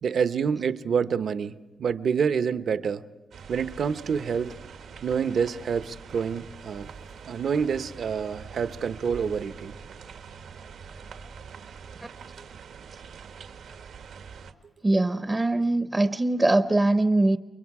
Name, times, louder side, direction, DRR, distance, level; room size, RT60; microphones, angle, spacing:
voice 1, 0.0-3.0 3.5-4.5 5.0-6.9 7.2-9.7, right 6 dB, 60° right, 12 dB, 0.9 m, -27 dB
sound 1, 3.3-14.5, right 6 dB, 85° right, 1.7 m, -44 dB
voice 2, 14.8-17.4, right 2 dB, 15° right, 9 dB, 0.7 m, -22 dB
30.0 x 23.5 x 4.8 m, 1.2 s
wide cardioid pair, 150°, 0 cm